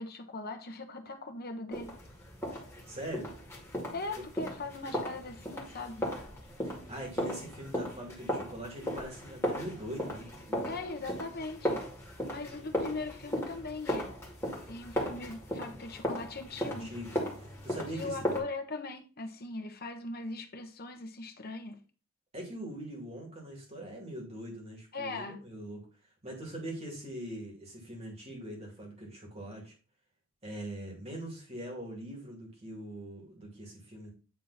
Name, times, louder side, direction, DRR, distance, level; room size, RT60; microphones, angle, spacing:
voice 1, 0.0-2.0 3.9-6.1 10.6-11.8 12.3-14.2 14.7-16.9 17.9-21.8 24.9-25.4, left 3 dB, 45° left, 1.0 m, -40 dB
sound 1, 1.7-18.4, equal, 15° left, 2.3 m, -37 dB
voice 2, 2.5-3.3 6.6-10.7 16.6-18.2 22.3-25.9 26.2-29.7 30.4-34.1, right 1 dB, 30° right, 2.7 m, -42 dB
9.0 x 3.7 x 4.2 m
head